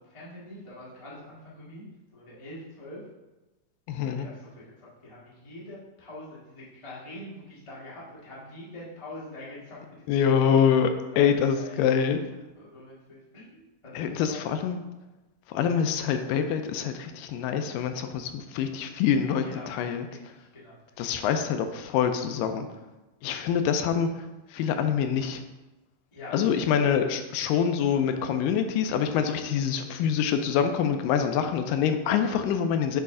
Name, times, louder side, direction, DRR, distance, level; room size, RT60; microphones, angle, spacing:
voice 1, 0.1-1.8 2.1-3.0 4.0-4.5 4.8-10.5 11.1-11.8 12.5-14.6 19.4-20.2 20.5-20.8 21.2-21.3 26.1-27.0 31.1-31.2, left 1 dB, 45° left, -8 dB, 0.4 m, -44 dB
voice 2, 3.9-4.3 10.1-10.9 11.2-12.2 13.9-14.8 15.5-20.1 21.0-22.7 23.2-24.1 24.5-25.4 26.3-33.0, left 7 dB, 85° left, 7 dB, 2.2 m, -25 dB
8.2 x 3.1 x 3.7 m, 1.1 s
omnidirectional pair, 3.9 m